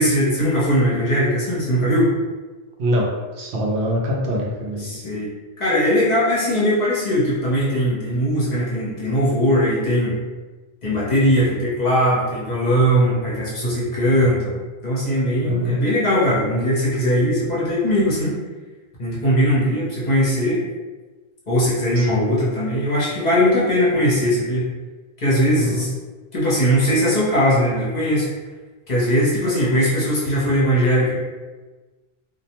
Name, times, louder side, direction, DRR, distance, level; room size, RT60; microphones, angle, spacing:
voice 1, 0.0-2.1 4.8-5.3 5.6-10.2 10.8-18.4 19.0-20.6 21.5-24.7 25.2-25.9 26.3-28.3 28.9-31.1, equal, 45° left, -7 dB, 0.8 m, -20 dB
voice 2, 3.4-4.9 15.4-15.8 22.0-22.3 25.5-25.9, equal, 85° right, -1 dB, 0.8 m, -23 dB
2.3 x 2.1 x 2.8 m, 1.3 s
omnidirectional pair, 1.1 m